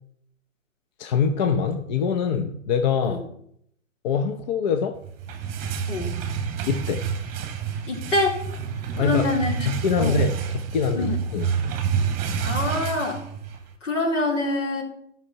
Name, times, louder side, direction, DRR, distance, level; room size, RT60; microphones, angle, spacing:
voice 1, 1.0-3.2 4.0-5.0 6.7-7.0 9.0-9.3 9.7-11.5, left 6 dB, 35° left, 7 dB, 0.7 m, -24 dB
sound 1, 5.0-13.7, right 6 dB, 20° right, 1.5 m, -28 dB
voice 2, 7.9-8.4 9.0-9.7 10.0-10.2 11.0-11.2 12.4-13.2 13.8-14.8, left 2 dB, 65° left, 0 dB, 3.9 m, -25 dB
15.0 x 6.0 x 5.7 m, 0.71 s
figure-of-eight pair, 115°, 41 cm